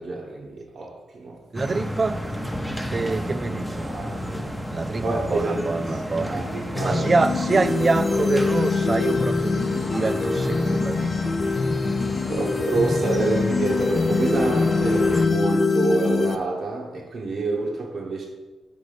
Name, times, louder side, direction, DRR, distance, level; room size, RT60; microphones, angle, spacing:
voice 1, 0.0-1.4 3.0-3.1 3.8-4.5 5.0-7.1 12.3-18.3, right 3 dB, 65° right, -3 dB, 0.7 m, -28 dB
sound 1, 1.5-15.3, equal, ahead, 0.7 m, -32 dB
voice 2, 1.5-2.3 2.9-3.9 4.7-6.4 6.8-11.3, right 3 dB, 45° right, 12 dB, 0.3 m, -25 dB
sound 2, 6.7-16.3, left 4 dB, 50° left, 0.6 m, -23 dB
5.2 x 3.8 x 5.0 m, 1.2 s
supercardioid pair, 45°, 0 cm